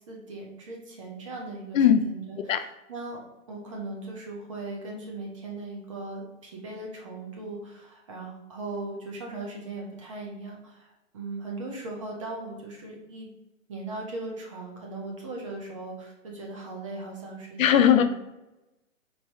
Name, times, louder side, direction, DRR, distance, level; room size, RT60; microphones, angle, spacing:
voice 1, 0.1-2.4 2.9-3.2 3.5-13.3 13.7-18.1, right 2 dB, 25° right, -1 dB, 0.5 m, -38 dB
voice 2, 17.6-18.2, left 9 dB, 75° left, 10 dB, 0.5 m, -19 dB
4.6 x 2.6 x 2.8 m, 0.94 s
hypercardioid pair, 145°, 40 cm